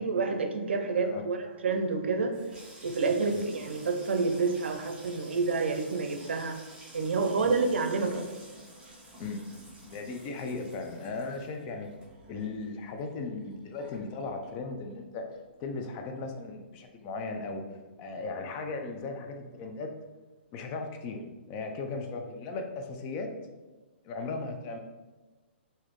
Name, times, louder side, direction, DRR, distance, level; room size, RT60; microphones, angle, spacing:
voice 1, 0.0-2.3 2.8-6.6 6.9-8.3, right 4 dB, 85° right, 6 dB, 0.5 m, -28 dB
Water tap faucet / Sink (filling or washing), 2.2-15.0 15.3-16.0 16.2-16.6, right 1 dB, 10° right, 1.0 m, -52 dB
voice 2, 9.9-11.9 12.3-15.2 15.6-17.6 18.0-19.9 20.5-21.2 21.5-23.3 24.0-24.8, left 3 dB, 30° left, 4 dB, 0.4 m, -37 dB
4.0 x 2.6 x 3.0 m, 1.2 s
hypercardioid pair, 155°, 6 cm